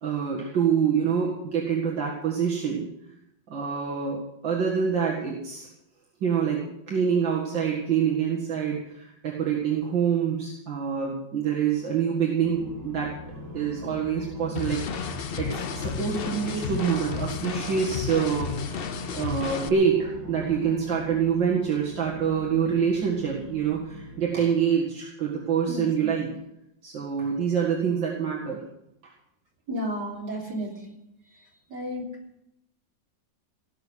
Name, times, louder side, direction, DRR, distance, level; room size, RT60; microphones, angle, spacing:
voice 1, 0.0-2.9 3.5-5.7 6.2-13.1 13.5-18.5 19.1-26.3 26.8-28.6 29.0-29.1, right 7 dB, 80° right, -3 dB, 2.7 m, -26 dB
sound 1, 12.4-24.2, left 2 dB, 45° right, 4.1 m, -41 dB
sound 2, 14.6-19.7, left 6 dB, 65° left, 0.5 m, -32 dB
voice 2, 25.7-26.1 29.7-30.7 31.7-32.1, equal, 60° right, -2 dB, 4.0 m, -32 dB
18.5 x 6.4 x 9.3 m, 0.83 s
omnidirectional pair, 2.0 m